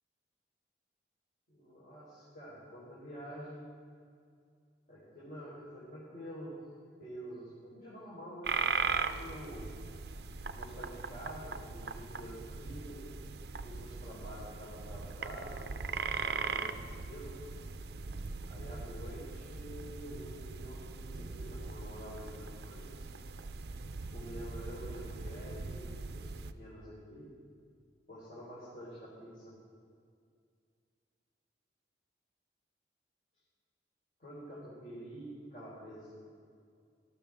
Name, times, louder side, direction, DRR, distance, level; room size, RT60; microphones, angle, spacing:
voice 1, 1.5-3.7 4.9-6.5 7.0-9.7 10.5-13.0 13.6-15.8 16.1-17.3 18.5-23.1 24.1-26.3 26.6-27.3 28.1-29.5 34.2-36.2, equal, 50° left, -8 dB, 4.1 m, -47 dB
sound 1, 8.4-26.5, right 5 dB, 65° right, 0.5 m, -39 dB
19.0 x 13.0 x 3.5 m, 2.2 s
head